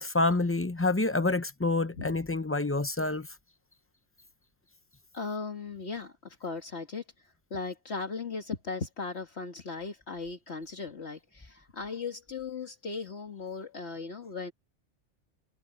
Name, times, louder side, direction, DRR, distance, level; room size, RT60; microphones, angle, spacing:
voice 1, 0.0-3.3, left 2 dB, 15° left, 0.5 m, -27 dB
voice 2, 5.1-7.0 7.5-14.5, left 4 dB, 65° left, 2.2 m, -37 dB
omnidirectional pair, 1.2 m